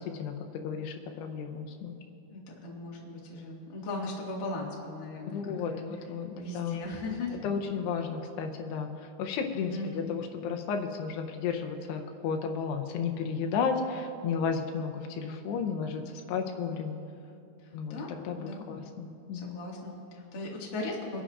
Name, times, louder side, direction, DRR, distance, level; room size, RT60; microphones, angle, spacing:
voice 1, 0.0-1.9 5.3-6.8 7.4-16.0 16.3-17.0 17.7-18.0 18.3-19.6, left 6 dB, 80° left, 4 dB, 2.8 m, -33 dB
voice 2, 2.3-5.4 5.6-5.9 6.3-7.4 9.7-10.1 17.6-18.1 18.4-18.7 19.3-21.2, left 2 dB, 45° left, -4 dB, 1.8 m, -38 dB
27.0 x 11.0 x 2.5 m, 2.6 s
omnidirectional pair, 4.8 m